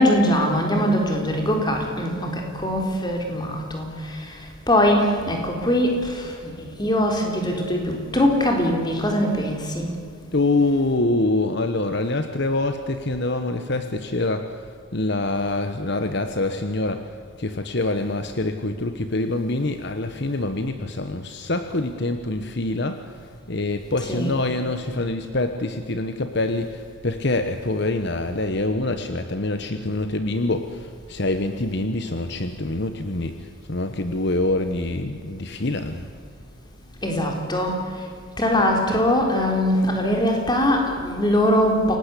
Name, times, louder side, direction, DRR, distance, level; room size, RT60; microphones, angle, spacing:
voice 1, 0.0-3.9 4.7-9.9 24.1-24.3 37.0-37.8 38.4-42.0, left 1 dB, 20° left, 2 dB, 3.9 m, -21 dB
voice 2, 10.3-14.5 14.9-17.1 17.4-23.0 23.5-36.1, left 2 dB, 55° left, 8 dB, 1.1 m, -25 dB
28.0 x 18.5 x 8.4 m, 2.3 s
head